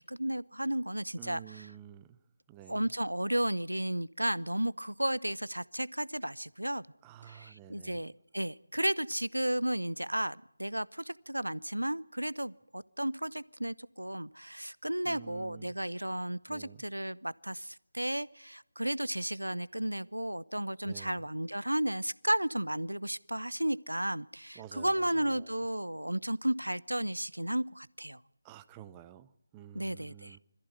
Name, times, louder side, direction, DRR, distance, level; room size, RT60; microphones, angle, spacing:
voice 1, 0.0-1.4 2.7-6.8 7.3-28.2 29.7-30.4, right 1 dB, 80° right, 0.8 m, -33 dB
voice 2, 1.2-2.2 2.5-2.9 7.0-8.1 15.0-15.8 16.5-16.9 20.8-21.3 24.5-25.7 28.4-30.4, right 11 dB, 10° right, 0.8 m, -51 dB
25.5 x 15.0 x 9.4 m
figure-of-eight pair, 160°, 0 cm